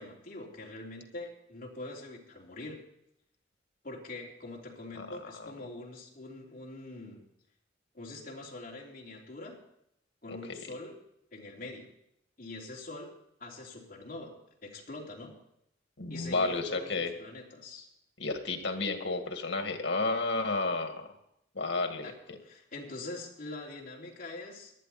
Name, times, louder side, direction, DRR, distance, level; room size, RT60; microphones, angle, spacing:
voice 1, 0.0-2.8 3.8-7.2 7.9-9.6 10.2-11.0 11.3-11.9 12.4-13.1 13.4-14.4 14.6-15.4 16.1-17.9 22.0-22.1 22.4-24.7, left 2 dB, 50° left, -2 dB, 3.2 m, -44 dB
voice 2, 16.0-17.1 18.2-21.1 21.5-22.4, left 3 dB, 85° left, 6 dB, 1.9 m, -32 dB
18.0 x 11.5 x 4.2 m, 0.79 s
head